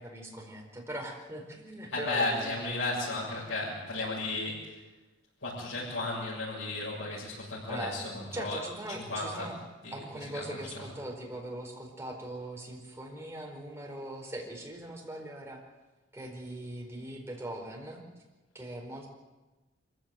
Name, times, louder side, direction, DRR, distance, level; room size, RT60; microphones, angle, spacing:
voice 1, 0.0-2.5 7.7-8.0 8.3-9.6 9.9-15.6 16.1-18.0 18.5-19.1, right 1 dB, 15° right, 0 dB, 4.6 m, -40 dB
voice 2, 1.9-4.8 5.4-8.6 8.9-9.5 9.8-9.9 10.3-10.8, left 2 dB, 75° left, -8 dB, 7.3 m, -34 dB
24.5 x 15.5 x 9.1 m, 1.2 s
head